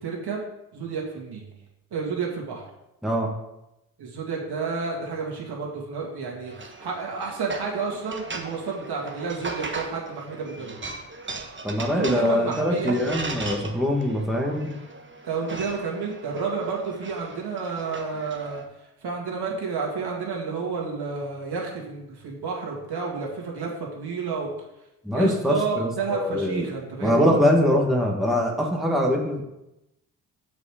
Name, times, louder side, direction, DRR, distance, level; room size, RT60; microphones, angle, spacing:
voice 1, 0.0-0.4 0.7-1.5 1.9-2.6 4.0-10.8 12.0-13.0 15.2-18.6 19.0-24.5 25.1-27.4, right 5 dB, 55° right, -2 dB, 2.4 m, -30 dB
sound 1, 6.5-18.6, right 3 dB, 25° right, 1.3 m, -38 dB
voice 2, 11.6-14.8 25.0-26.7 27.0-29.4, left 1 dB, ahead, -1 dB, 1.6 m, -23 dB
6.5 x 5.2 x 5.0 m, 0.90 s
hypercardioid pair, 50°, 45 cm